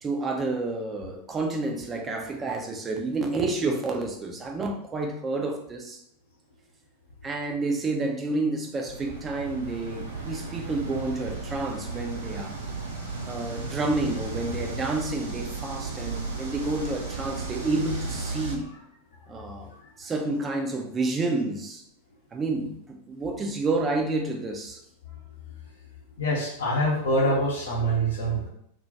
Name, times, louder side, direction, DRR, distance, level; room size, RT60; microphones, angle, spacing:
voice 1, 0.0-6.0 7.2-12.5 13.2-18.6 19.3-19.7 20.0-21.8 22.3-24.8, right 3 dB, 20° right, 2 dB, 0.4 m, -29 dB
sound 1, 8.9-18.6, right 3 dB, 70° right, 0.5 m, -35 dB
voice 2, 26.2-28.5, right 1 dB, 60° left, -5 dB, 0.6 m, -25 dB
2.1 x 2.1 x 2.7 m, 0.72 s
figure-of-eight pair, 90°, 0 cm